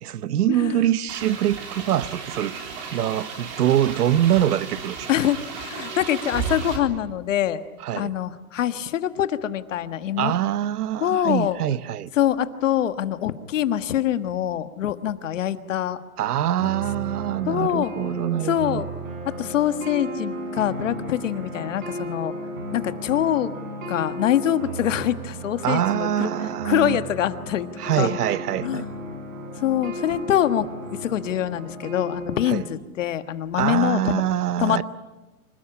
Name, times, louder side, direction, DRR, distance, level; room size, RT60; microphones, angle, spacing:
voice 1, 0.0-2.6 2.9-5.1 7.8-8.1 10.2-12.1 16.2-18.8 25.6-27.0 27.8-28.9 32.5-32.6 33.5-34.8, right 11 dB, 90° right, 1.0 m, -24 dB
sound 1, 1.1-6.8, right 5 dB, 30° right, 3.6 m, -34 dB
voice 2, 5.1-7.6 7.9-10.3 11.0-11.6 12.1-16.0 17.5-17.9 18.5-18.9 19.2-22.3 22.7-23.5 23.9-26.3 26.6-27.7 28.0-28.2 28.6-28.9 29.6-34.2 34.6-34.8, left 11 dB, 55° left, 1.5 m, -24 dB
sound 2, 16.6-32.6, right 1 dB, 60° right, 7.5 m, -34 dB
26.0 x 18.5 x 9.8 m
supercardioid pair, 180°, 44 cm